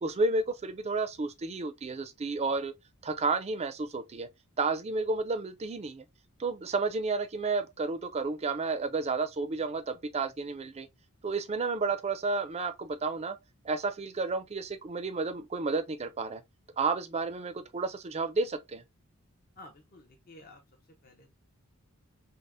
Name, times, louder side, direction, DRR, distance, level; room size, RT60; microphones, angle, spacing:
voice 1, 0.0-2.7 3.0-4.3 4.6-6.0 6.4-10.9 11.2-13.4 13.6-16.4 16.8-18.8, right 3 dB, 30° right, 0.4 m, -31 dB
voice 2, 19.6-20.6 21.0-21.3, left 1 dB, 45° left, 0.7 m, -52 dB
5.3 x 2.1 x 2.5 m
head